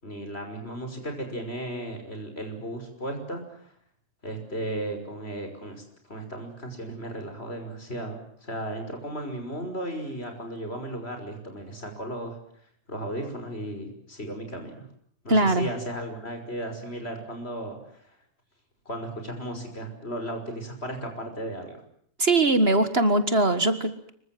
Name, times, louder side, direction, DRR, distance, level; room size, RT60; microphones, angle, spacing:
voice 1, 0.0-3.7 4.2-12.4 12.9-14.9 15.2-18.0 18.9-21.8, right 1 dB, 50° left, 5 dB, 6.1 m, -35 dB
voice 2, 15.3-15.7 22.2-24.1, right 2 dB, 50° right, 10 dB, 2.0 m, -21 dB
26.0 x 23.5 x 7.7 m, 0.65 s
omnidirectional pair, 1.4 m